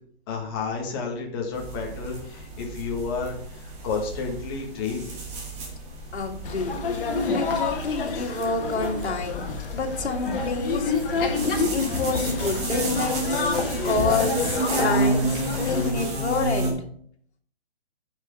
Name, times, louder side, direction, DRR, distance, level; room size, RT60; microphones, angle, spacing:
voice 1, 0.3-5.1 8.1-8.3, left 5 dB, 25° left, 0 dB, 1.8 m, -31 dB
sound 1, 1.5-16.7, right 2 dB, 15° right, 1.4 m, -31 dB
voice 2, 6.1-6.7 7.3-9.4 9.7-13.4 13.8-16.8, left 3 dB, 90° left, 1 dB, 2.0 m, -28 dB
sound 2, 6.4-15.9, left 4 dB, 55° left, 2.0 m, -28 dB
9.2 x 5.7 x 5.4 m, 0.63 s
hypercardioid pair, 165°, 32 cm